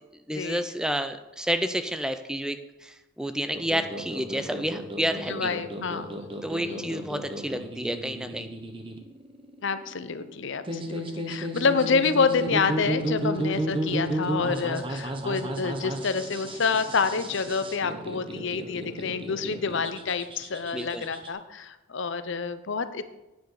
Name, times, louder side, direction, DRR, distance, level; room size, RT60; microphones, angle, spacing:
voice 1, 0.3-5.5 6.4-8.5 20.7-21.0, equal, 5° right, 9 dB, 0.4 m, -30 dB
sound 1, 3.5-21.3, right 1 dB, 25° right, 1.1 m, -33 dB
voice 2, 5.3-6.2 6.6-6.9 9.6-23.0, left 5 dB, 60° left, 12 dB, 0.7 m, -28 dB
10.0 x 9.3 x 4.8 m, 1.0 s
head